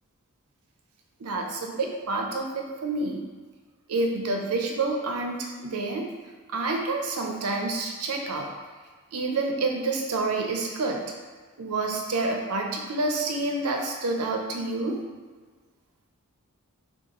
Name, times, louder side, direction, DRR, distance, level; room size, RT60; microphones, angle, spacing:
voice 1, 1.2-3.2 3.9-6.1 6.5-8.5 9.1-11.0 11.6-15.0, right 3 dB, 80° right, 2 dB, 0.6 m, -28 dB
6.2 x 2.4 x 2.9 m, 1.5 s
head